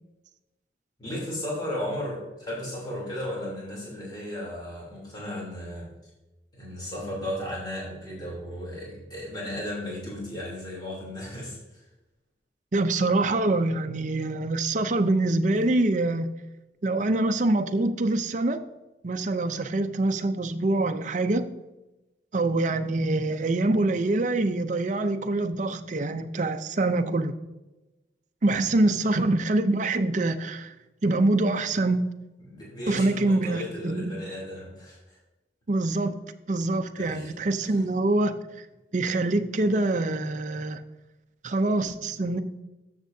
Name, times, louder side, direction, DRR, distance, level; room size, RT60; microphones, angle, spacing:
voice 1, 1.0-5.9 6.5-11.8 29.0-29.2 32.4-35.2 36.9-37.3 37.6-37.8, left 1 dB, 25° left, -5 dB, 3.1 m, -35 dB
voice 2, 12.7-16.3 16.8-18.6 19.0-21.5 22.3-27.3 28.4-30.7 31.0-32.0 32.9-34.1 35.7-36.2 36.5-38.3 38.9-40.8 41.4-42.4, right 2 dB, 45° right, 8 dB, 0.5 m, -25 dB
13.0 x 7.3 x 2.7 m, 1.0 s
head